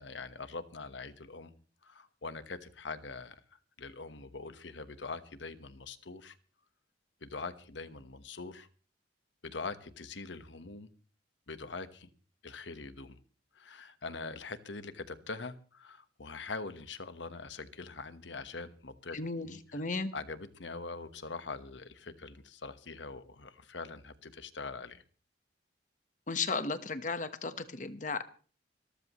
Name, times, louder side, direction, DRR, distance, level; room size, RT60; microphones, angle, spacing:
voice 1, 0.0-1.5 1.8-3.4 3.8-6.3 7.2-8.7 9.4-10.9 11.5-12.1 12.4-13.2 13.5-19.8 20.1-25.0, left 4 dB, 85° left, 11 dB, 1.3 m, -43 dB
voice 2, 19.1-20.1 26.3-28.2, left 4 dB, 45° left, 11 dB, 1.2 m, -35 dB
25.0 x 13.5 x 3.1 m, 0.40 s
head